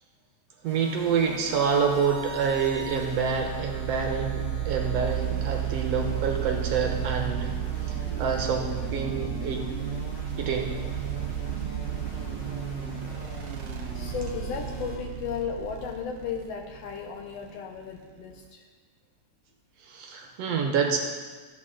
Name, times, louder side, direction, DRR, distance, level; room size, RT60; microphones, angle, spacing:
sound 1, 0.6-15.0, equal, 45° left, 3.7 m, -43 dB
voice 1, 0.6-7.5 8.2-9.7 10.4-10.7 19.8-21.0, right 6 dB, 70° right, 2 dB, 1.8 m, -27 dB
sound 2, 1.3-18.5, right 10 dB, 85° right, 1.9 m, -33 dB
voice 2, 13.4-18.7, left 7 dB, 75° left, 3 dB, 1.6 m, -35 dB
13.5 x 8.2 x 3.7 m, 1.5 s
omnidirectional pair, 3.3 m